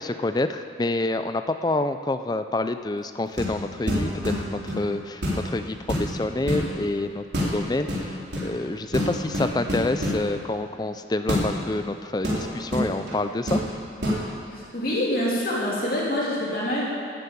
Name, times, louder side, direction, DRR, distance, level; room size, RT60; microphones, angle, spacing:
voice 1, 0.0-7.2 7.5-13.6, left 2 dB, 20° left, 9 dB, 0.4 m, -27 dB
sound 1, 3.3-3.6 3.9-4.8 5.2-5.5 5.8-6.7 7.3-7.6 7.9-8.5 8.9-10.2 11.3-11.5 12.2-13.2 13.5-13.7 14.0-14.2, equal, 70° right, 3.7 m, -26 dB
voice 2, 14.5-16.8, left 1 dB, 50° left, -5 dB, 3.1 m, -26 dB
11.0 x 9.6 x 8.6 m, 2.3 s
head